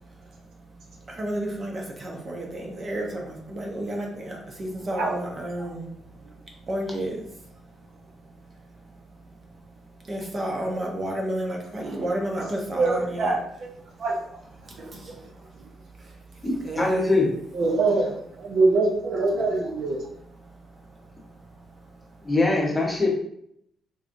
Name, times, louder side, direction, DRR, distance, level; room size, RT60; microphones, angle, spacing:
voice 1, 0.0-13.3 13.8-14.0 14.6-17.2 20.4-22.3, right 1 dB, 30° right, 1 dB, 0.7 m, -33 dB
voice 2, 4.9-5.7 11.8-12.0 12.7-13.7 14.0-14.4 14.8-15.3 17.5-20.0, right 3 dB, 65° right, 0 dB, 0.7 m, -25 dB
voice 3, 16.4-17.3 22.2-23.1, left 2 dB, 15° left, -3 dB, 0.9 m, -23 dB
3.6 x 3.0 x 2.6 m, 0.71 s
cardioid pair, 125°, 0 cm